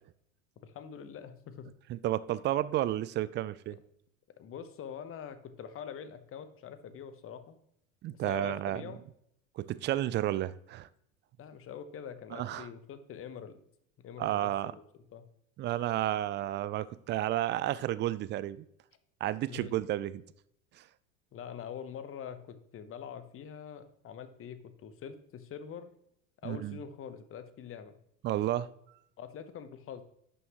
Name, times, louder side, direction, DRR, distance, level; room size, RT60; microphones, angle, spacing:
voice 1, 0.6-1.7 4.4-7.6 8.1-9.1 11.4-13.6 14.0-14.8 15.1-15.3 19.4-19.7 21.3-25.9 26.4-28.0 29.2-30.0, left 8 dB, 35° left, 11 dB, 1.0 m, -44 dB
voice 2, 1.9-3.8 8.0-8.8 9.6-10.9 12.3-12.7 14.2-14.7 15.6-18.7 19.2-20.2 26.4-26.8 28.2-28.7, right 13 dB, 30° right, 17 dB, 0.4 m, -31 dB
11.0 x 6.2 x 3.0 m, 0.72 s
hypercardioid pair, 80°, 39 cm